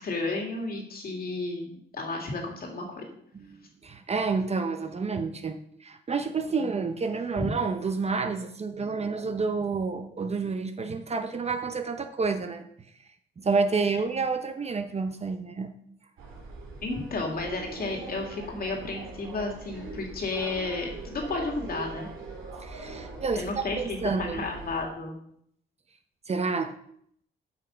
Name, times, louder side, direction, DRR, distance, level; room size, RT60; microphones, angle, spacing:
voice 1, 0.0-3.0 7.3-7.5 16.8-22.1 23.3-25.2, left 3 dB, 50° left, 1 dB, 2.5 m, -32 dB
voice 2, 3.3-12.7 13.4-15.7 22.6-24.5 26.3-26.8, right 4 dB, 30° right, 7 dB, 0.8 m, -29 dB
sound 1, 16.2-24.8, right 3 dB, 90° right, 2.4 m, -42 dB
8.4 x 5.7 x 5.2 m, 0.68 s
cardioid pair, 90°, 20 cm